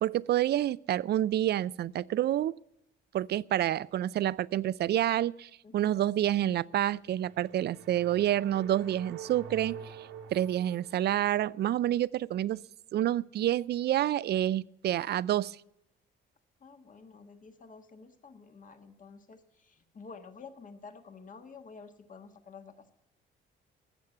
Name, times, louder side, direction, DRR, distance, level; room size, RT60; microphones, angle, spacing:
voice 1, 0.0-2.5 3.1-12.6 12.9-15.6, right 12 dB, 55° right, 0.4 m, -28 dB
voice 2, 5.6-6.0 16.6-22.9, left 5 dB, 40° left, 1.5 m, -50 dB
sound 1, 7.0-11.4, right 7 dB, 85° right, 1.5 m, -47 dB
14.0 x 7.1 x 9.0 m
cardioid pair, 90°, 20 cm